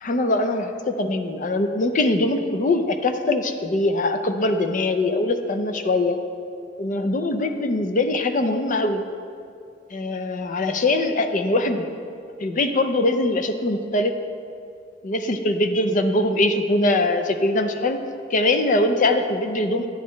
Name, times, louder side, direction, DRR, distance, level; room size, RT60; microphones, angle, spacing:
voice 1, 0.0-6.2 6.8-9.1 9.9-11.8 12.4-14.1 15.0-18.0 18.3-19.9, left 2 dB, 45° left, 7 dB, 0.5 m, -22 dB
10.5 x 9.0 x 3.1 m, 2.4 s
head